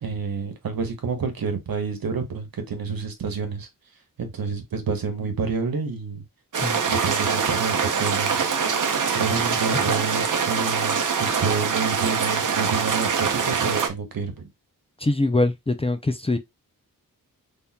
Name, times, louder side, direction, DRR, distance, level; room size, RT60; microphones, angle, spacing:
voice 1, 0.0-3.7 4.2-6.2 6.9-8.4 9.1-14.5, right 5 dB, 80° right, 1.2 m, -29 dB
sound 1, 6.5-13.9, right 6 dB, 60° right, 0.8 m, -24 dB
voice 2, 15.0-16.4, left 2 dB, 15° left, 0.4 m, -23 dB
4.1 x 3.6 x 2.3 m
wide cardioid pair, 125°, 35 cm